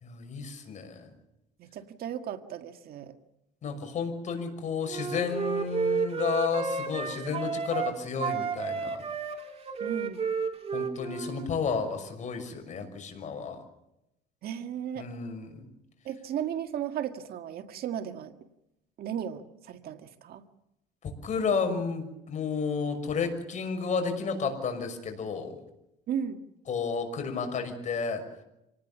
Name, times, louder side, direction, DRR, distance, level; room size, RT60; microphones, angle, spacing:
voice 1, 0.0-1.1 3.6-9.0 10.7-13.6 15.0-15.7 21.0-25.6 26.7-28.2, left 5 dB, 45° left, 5 dB, 6.1 m, -32 dB
voice 2, 1.6-3.1 9.8-10.2 14.4-15.1 16.1-18.3 19.0-20.4 26.1-26.4, right 9 dB, 65° right, 7 dB, 1.8 m, -35 dB
Wind instrument woodwind instrument, 4.9-7.9 8.2-11.5, right 5 dB, 35° right, 3.0 m, -31 dB
27.0 x 19.0 x 7.2 m, 0.84 s
cardioid pair, 110°, 17 cm